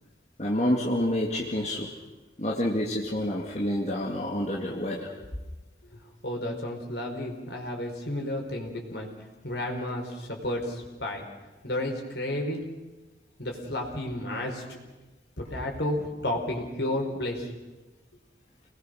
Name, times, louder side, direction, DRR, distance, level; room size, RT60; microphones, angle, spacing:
voice 1, 0.4-1.9 2.4-5.1, left 1 dB, 35° left, -2 dB, 2.2 m, -28 dB
voice 2, 6.2-9.1 9.4-11.2 11.6-12.6 13.4-14.8 15.4-17.5, left 1 dB, 70° left, 1 dB, 4.8 m, -32 dB
28.5 x 20.0 x 6.5 m, 1.1 s
head